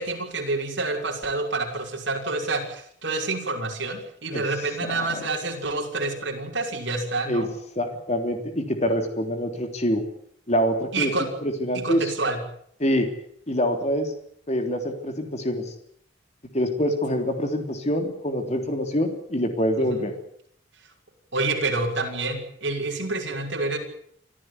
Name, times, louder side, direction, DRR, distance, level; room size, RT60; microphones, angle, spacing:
voice 1, 0.0-7.5 10.9-11.3 11.7-12.4 19.8-20.0 21.3-23.8, right 3 dB, 65° right, 1 dB, 6.1 m, -28 dB
voice 2, 4.8-5.3 7.3-7.4 7.8-10.0 10.5-12.1 12.8-13.1 13.5-14.1 14.5-15.7 16.5-20.1, equal, 35° left, 5 dB, 3.5 m, -25 dB
26.0 x 14.5 x 9.7 m, 0.65 s
head